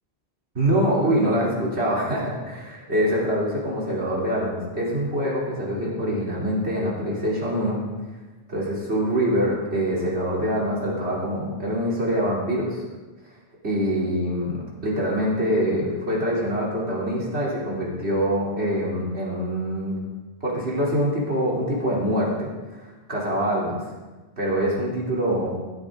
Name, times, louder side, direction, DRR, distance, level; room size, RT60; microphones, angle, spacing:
voice 1, 0.6-7.8 8.5-12.8 13.6-20.0 20.4-23.8 24.4-25.5, equal, 80° right, -5 dB, 3.5 m, -24 dB
15.5 x 12.5 x 3.7 m, 1.2 s
omnidirectional pair, 1.1 m